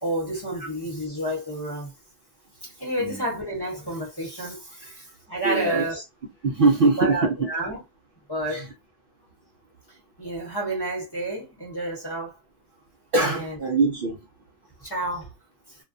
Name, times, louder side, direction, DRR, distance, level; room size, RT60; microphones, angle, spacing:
voice 1, 0.0-1.9 2.6-6.0 7.0-7.8 8.3-8.7 10.2-12.4 13.2-13.6 14.8-15.3, right 1 dB, 20° left, 0.9 m, -30 dB
voice 2, 5.4-6.0 6.4-7.5 8.5-8.7 13.1-14.2, right 3 dB, 60° right, 0.6 m, -22 dB
2.3 x 2.2 x 2.5 m
omnidirectional pair, 1.3 m